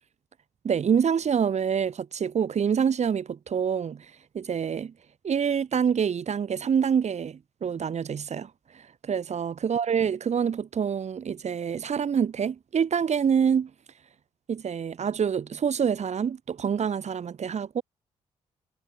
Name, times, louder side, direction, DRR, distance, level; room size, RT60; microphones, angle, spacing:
voice 1, 0.6-4.1 4.3-4.9 5.2-13.7 14.5-17.8, right 7 dB, 55° right, 2.5 m, -26 dB
supercardioid pair, 55°, 14 cm